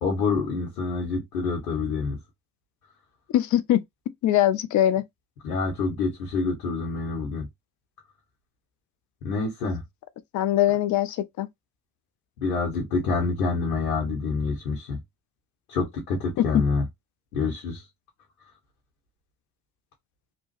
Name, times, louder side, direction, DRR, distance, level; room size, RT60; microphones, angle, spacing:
voice 1, 0.0-2.2 5.4-7.5 9.2-9.8 12.4-15.0 15.7-16.8 17.3-17.8, left 4 dB, 80° left, 1.0 m, -27 dB
voice 2, 3.3-3.8 4.2-5.0 10.3-11.5 16.4-16.6, left 12 dB, 40° left, 0.5 m, -22 dB
2.9 x 2.2 x 3.0 m
hypercardioid pair, 55°, 46 cm